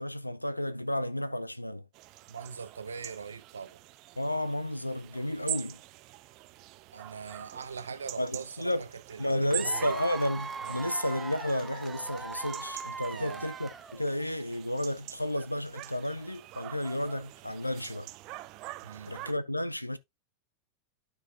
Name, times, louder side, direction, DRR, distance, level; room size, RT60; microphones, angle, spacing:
voice 1, 0.0-1.8 4.2-5.8 8.2-8.9 9.2-18.1 19.1-20.0, left 1 dB, 85° left, 0.6 m, -32 dB
sound 1, 1.9-19.3, right 17 dB, 40° right, 0.5 m, -45 dB
voice 2, 2.3-3.8 6.9-10.0 10.6-10.8 13.1-13.4 18.8-19.2, right 5 dB, 75° right, 0.8 m, -42 dB
Cheering / Applause / Crowd, 9.5-14.2, right 4 dB, 15° right, 0.8 m, -40 dB
13.0 x 4.6 x 2.4 m
figure-of-eight pair, 90°, 0 cm